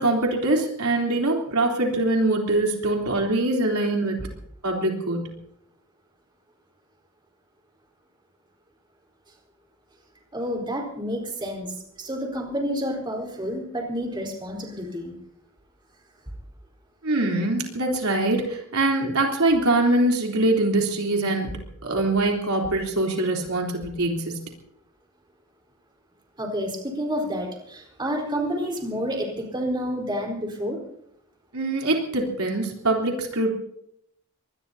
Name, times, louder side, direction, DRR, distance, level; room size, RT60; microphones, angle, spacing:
voice 1, 0.0-4.2 4.6-5.3 17.0-21.5 21.8-24.4 31.5-33.5, right 2 dB, 80° right, 0 dB, 3.6 m, -23 dB
voice 2, 10.3-15.1 26.4-30.8, equal, 20° right, 0 dB, 4.4 m, -29 dB
24.0 x 20.0 x 2.8 m, 0.72 s
head